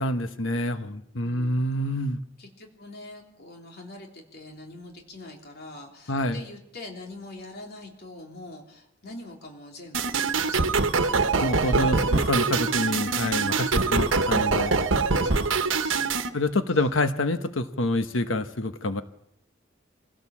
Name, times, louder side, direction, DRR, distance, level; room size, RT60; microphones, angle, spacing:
voice 1, 0.0-2.2 6.1-6.4 11.4-14.7 16.3-19.0, left 1 dB, 80° left, 10 dB, 1.1 m, -27 dB
voice 2, 1.2-1.6 2.4-12.1 13.7-14.2 15.2-16.5, left 2 dB, 55° left, 1 dB, 3.5 m, -44 dB
sound 1, 9.9-16.3, right 4 dB, 90° right, 1.2 m, -24 dB
24.5 x 17.0 x 7.2 m, 0.80 s
head